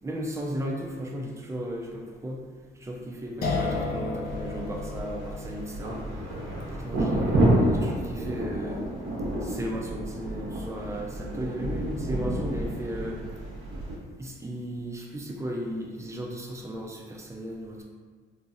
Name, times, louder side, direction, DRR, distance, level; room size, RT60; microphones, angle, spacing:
voice 1, 0.0-2.4 2.8-6.2 6.7-8.9 9.4-13.2 14.2-17.8, equal, 15° right, -1 dB, 0.6 m, -35 dB
sound 1, 3.4-10.4, left 3 dB, 50° left, 0.6 m, -36 dB
sound 2, 4.2-14.0, right 1 dB, 85° right, 1.1 m, -29 dB
3.6 x 2.8 x 2.5 m, 1.5 s
cardioid pair, 90°, 20 cm